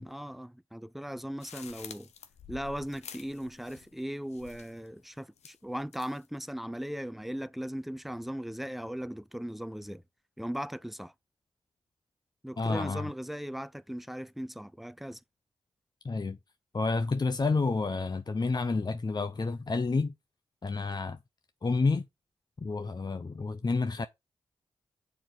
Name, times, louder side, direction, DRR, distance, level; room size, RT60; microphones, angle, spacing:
voice 1, 0.0-2.1 2.5-10.0 10.4-11.1 12.4-15.2, equal, ahead, 0.5 m, -38 dB
sound 1, 1.4-4.0 4.3-4.9 5.4-6.3, left 7 dB, 85° left, 0.7 m, -49 dB
voice 2, 12.6-13.1 16.0-16.4 16.7-20.1 20.6-21.2 21.6-22.0 22.6-24.1, left 3 dB, 40° left, 0.7 m, -29 dB
6.8 x 4.7 x 3.9 m
cardioid pair, 45°, 11 cm